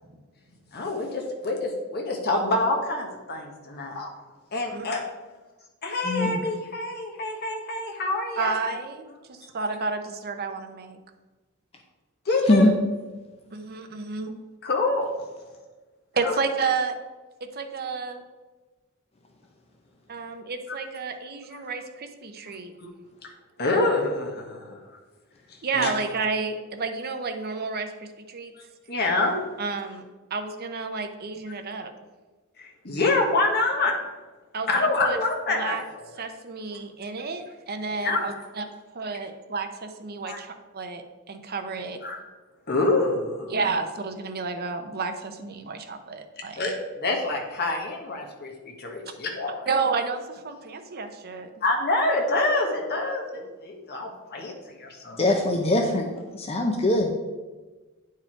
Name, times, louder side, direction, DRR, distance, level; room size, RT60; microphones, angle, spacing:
voice 1, 0.7-4.1 4.5-5.0 5.8-8.6 12.2-12.6 14.6-15.1 16.2-16.4 21.5-21.6 22.5-22.6 22.8-22.9 23.2-23.3 23.6-24.9 25.5-25.9 28.6-29.4 32.6-34.0 34.7-36.1 38.0-38.2 40.2-40.4 42.0-42.2 42.7-43.5 46.6-49.7 51.6-55.2, left 2 dB, 50° left, 1 dB, 1.4 m, -26 dB
voice 2, 6.0-6.4 12.5-12.8 37.9-38.0 55.2-56.1 56.3-57.1, left 2 dB, 30° left, 3 dB, 0.6 m, -22 dB
voice 3, 8.4-11.0 13.5-14.3 16.1-16.9 17.4-18.2 20.1-22.7 25.6-28.5 29.6-30.0 30.3-31.9 34.5-35.2 35.5-35.8 36.2-38.7 38.9-42.0 43.5-46.6 49.7-51.5, right 4 dB, 45° right, 6 dB, 0.8 m, -31 dB
9.3 x 4.8 x 4.6 m, 1.3 s
head